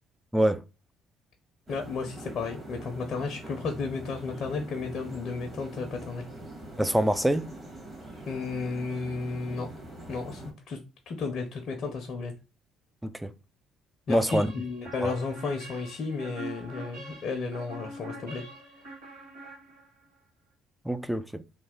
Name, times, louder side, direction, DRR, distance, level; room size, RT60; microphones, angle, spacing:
voice 1, 1.7-6.3 8.3-9.7 10.1-10.8 11.1-12.3 14.1-18.4, left 4 dB, 55° left, 0.7 m, -33 dB
sound 1, 1.7-10.5, right 1 dB, 30° right, 1.6 m, -43 dB
voice 2, 6.8-7.5 13.0-13.3 14.1-14.5 15.0-15.1 20.9-21.4, right 1 dB, 5° right, 0.4 m, -25 dB
sound 2, 14.3-20.1, right 1 dB, 85° right, 1.4 m, -44 dB
3.2 x 2.3 x 3.7 m
hypercardioid pair, 55°, 0 cm